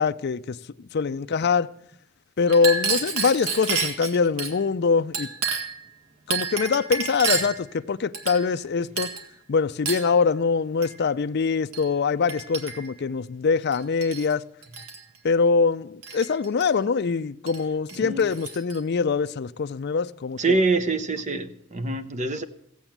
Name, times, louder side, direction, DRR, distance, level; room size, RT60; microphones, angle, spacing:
voice 1, 0.0-1.7 2.4-5.3 6.3-9.1 9.5-14.4 15.2-20.6, left 5 dB, 50° left, 0.4 m, -23 dB
Chink clink, 2.5-4.5 5.1-5.8 6.3-7.6 8.1-8.7 9.0-9.3 9.9-10.1 10.8-11.0 11.7-11.9 12.3-13.0 13.7-14.3 14.6-15.0 16.0-16.7 17.5-17.6 17.9-18.8, right 5 dB, 75° right, 1.9 m, -30 dB
voice 2, 17.9-18.2 20.4-22.4, right 3 dB, 35° right, 0.8 m, -25 dB
16.0 x 7.9 x 7.3 m
head